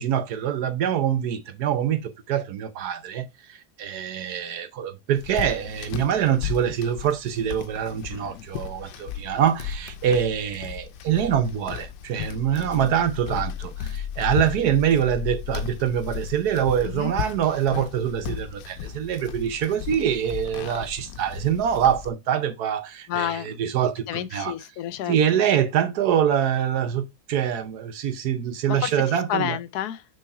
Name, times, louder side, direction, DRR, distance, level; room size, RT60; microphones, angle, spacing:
voice 1, 0.0-24.0 24.3-24.5 25.1-29.6, right 9 dB, 70° right, 1.3 m, -25 dB
sound 1, 5.2-22.1, left 9 dB, 90° left, 1.3 m, -35 dB
voice 2, 23.1-23.6 24.1-25.4 28.7-30.1, left 11 dB, 70° left, 1.1 m, -30 dB
6.3 x 3.9 x 4.7 m
omnidirectional pair, 1.8 m